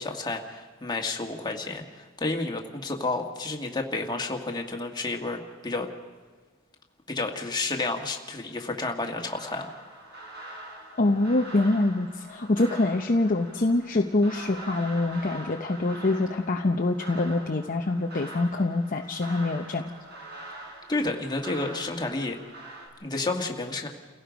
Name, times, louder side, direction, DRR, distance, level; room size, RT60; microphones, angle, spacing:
voice 1, 0.0-5.9 7.1-9.7 20.9-22.4 23.0-23.9, left 3 dB, 20° left, 2 dB, 1.8 m, -31 dB
sound 1, 9.1-22.9, right 2 dB, 55° right, 4.8 m, -44 dB
voice 2, 11.0-19.9, left 2 dB, 40° left, 3 dB, 0.8 m, -25 dB
29.5 x 17.0 x 5.2 m, 1.4 s
head